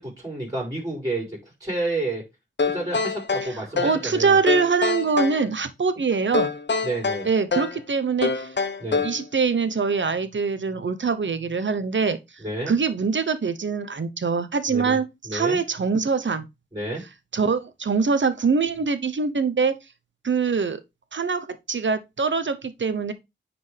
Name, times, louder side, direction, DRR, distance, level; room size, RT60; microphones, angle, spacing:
voice 1, 0.0-2.2 2.7-4.4 6.8-7.3 8.8-9.0 12.4-12.8 14.7-15.0 15.2-15.6 16.7-17.0, right 2 dB, 20° right, 5.4 m, -30 dB
sound 1, 2.6-4.0 4.5-5.4 6.3-7.8 8.2-9.2, left 4 dB, 65° left, 0.9 m, -25 dB
voice 2, 3.4-6.5 7.2-8.5 9.0-12.2 12.7-16.5 17.3-19.7 20.2-20.8 21.1-23.1, right 5 dB, 70° right, 0.9 m, -23 dB
9.6 x 4.4 x 3.4 m
wide cardioid pair, 55°, 20 cm